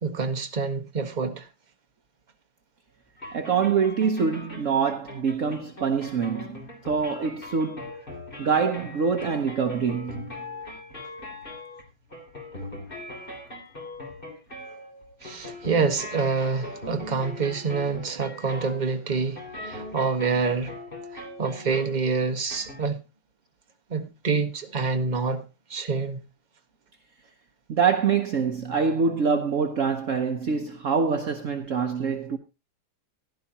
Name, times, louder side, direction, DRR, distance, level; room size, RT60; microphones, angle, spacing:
voice 1, 0.0-1.5 15.2-20.7 21.1-23.0 23.9-25.4 25.7-26.2, right 4 dB, 30° right, 1.4 m, -27 dB
sound 1, 3.2-22.0 22.5-22.8, left 1 dB, 30° left, 3.4 m, -41 dB
voice 2, 3.3-7.9 8.4-10.3 27.7-32.4, right 5 dB, 55° right, 1.2 m, -25 dB
16.0 x 11.5 x 2.9 m
omnidirectional pair, 1.8 m